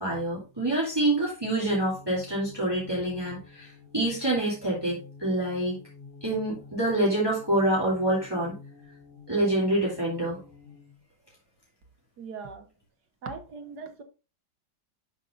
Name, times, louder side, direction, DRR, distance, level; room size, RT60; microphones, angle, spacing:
voice 1, 0.0-5.8 6.2-8.5 9.3-10.4, right 1 dB, 15° right, 2.6 m, -26 dB
sound 1, 1.6-11.0, left 4 dB, 35° left, 3.4 m, -50 dB
voice 2, 12.2-12.7 13.2-14.0, right 4 dB, 70° right, 1.7 m, -39 dB
11.0 x 5.3 x 2.5 m
omnidirectional pair, 1.8 m